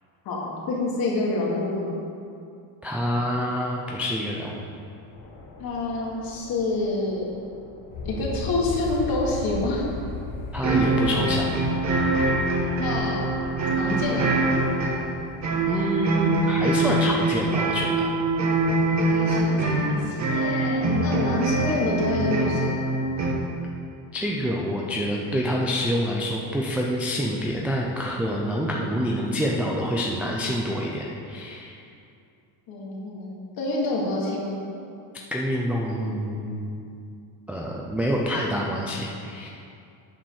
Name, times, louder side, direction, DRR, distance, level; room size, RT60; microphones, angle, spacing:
voice 1, 0.2-1.9 5.6-7.3 8.0-9.9 12.8-13.4 13.8-14.3 18.9-22.8 32.7-34.6, left 2 dB, 50° left, -3 dB, 2.2 m, -27 dB
voice 2, 2.8-4.6 10.5-11.5 15.7-18.1 24.1-31.8 35.3-36.8 37.5-39.5, equal, 5° right, -3 dB, 0.3 m, -27 dB
sound 1, 5.1-19.1, left 3 dB, 80° left, 1.9 m, -38 dB
sound 2, 10.6-23.3, right 2 dB, 35° right, 1.3 m, -24 dB
8.9 x 5.1 x 6.3 m, 2.5 s
cardioid pair, 155°, 47 cm